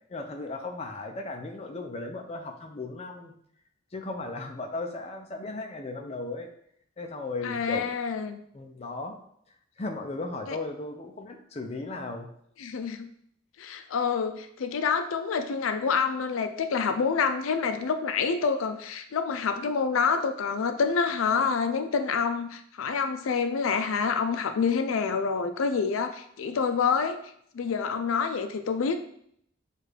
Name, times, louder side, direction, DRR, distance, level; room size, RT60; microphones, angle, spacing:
voice 1, 0.1-3.3 3.9-6.5 7.0-7.9 8.5-9.1 9.8-12.3, left 2 dB, 30° left, 4 dB, 0.5 m, -36 dB
voice 2, 7.4-8.4 10.5-10.6 12.6-13.1 13.6-27.2 27.5-29.0, left 5 dB, 85° left, 7 dB, 0.4 m, -27 dB
6.3 x 2.4 x 3.3 m, 0.68 s
head